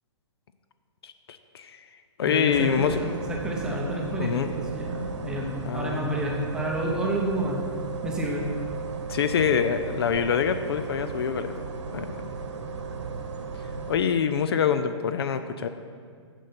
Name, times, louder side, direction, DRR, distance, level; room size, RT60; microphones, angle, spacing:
voice 1, 1.0-1.8 2.2-3.0 4.2-4.5 5.7-6.1 9.1-11.6 11.9-12.3 13.9-15.7, left 7 dB, 55° left, 10 dB, 0.5 m, -25 dB
voice 2, 2.3-7.6 8.0-8.5, right 1 dB, 5° right, -1 dB, 0.7 m, -29 dB
sound 1, 2.5-14.0, right 4 dB, 70° right, 1.3 m, -35 dB
9.0 x 6.6 x 5.9 m, 2.1 s
hypercardioid pair, 170°, 16 cm